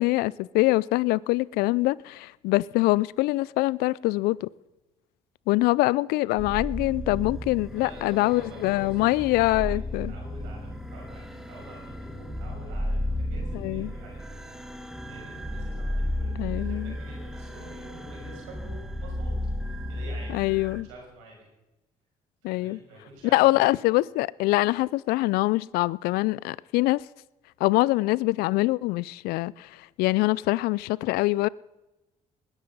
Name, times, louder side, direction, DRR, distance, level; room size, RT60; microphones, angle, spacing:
voice 1, 0.0-4.5 5.5-10.1 13.5-13.9 16.4-16.9 20.3-20.9 22.4-22.8 23.3-27.0 27.6-31.5, left 20 dB, 75° left, 0.4 m, -24 dB
sound 1, 6.4-20.8, left 1 dB, 5° right, 1.6 m, -34 dB
voice 2, 7.7-19.3 19.9-21.4 22.4-23.7, right 2 dB, 90° right, 6.0 m, -47 dB
20.0 x 11.0 x 5.5 m
hypercardioid pair, 55°, 16 cm